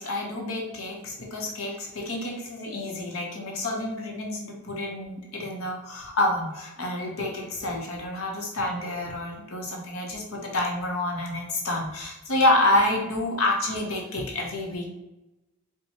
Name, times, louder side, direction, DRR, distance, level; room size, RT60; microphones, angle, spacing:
voice 1, 0.0-14.9, left 1 dB, 80° left, -1 dB, 0.9 m, -28 dB
4.5 x 2.2 x 4.2 m, 0.96 s
head